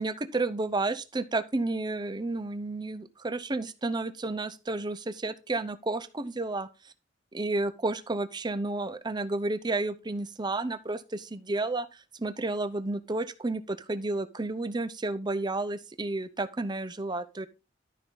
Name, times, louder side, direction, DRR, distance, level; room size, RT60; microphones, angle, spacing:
voice 1, 0.0-6.7 7.3-11.9 12.2-17.5, right 2 dB, 25° right, 0.7 m, -31 dB
12.5 x 5.3 x 3.9 m
head